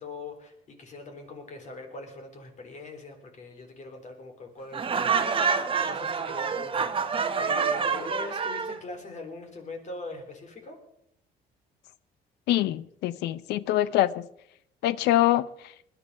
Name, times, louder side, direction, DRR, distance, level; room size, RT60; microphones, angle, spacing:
voice 1, 0.0-10.8, left 2 dB, 45° left, 3.8 m, -42 dB
Laughter, 4.7-8.8, right 6 dB, 30° right, 1.2 m, -27 dB
voice 2, 12.5-14.3 14.8-15.5, left 14 dB, 85° left, 0.6 m, -24 dB
20.5 x 11.0 x 4.9 m
cardioid pair, 110°, 17 cm